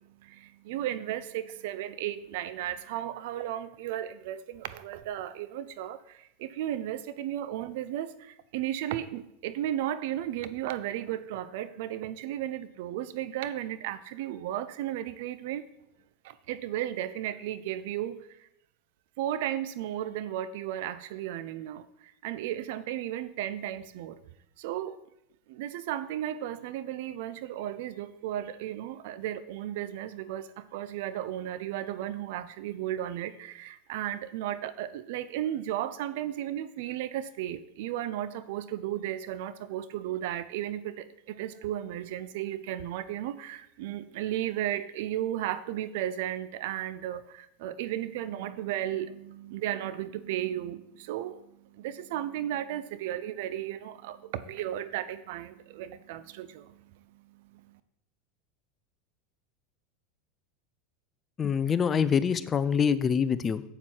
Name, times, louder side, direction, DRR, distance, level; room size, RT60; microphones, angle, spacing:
voice 1, 0.2-15.6 16.2-18.2 19.2-21.8 22.2-24.2 24.6-25.0 25.5-51.4 51.7-56.7 57.5-57.6, right 12 dB, 65° right, 14 dB, 0.6 m, -34 dB
voice 2, 61.4-63.6, left 7 dB, 25° left, 15 dB, 0.5 m, -25 dB
8.0 x 7.2 x 4.5 m, 0.82 s
hypercardioid pair, 100°, 0 cm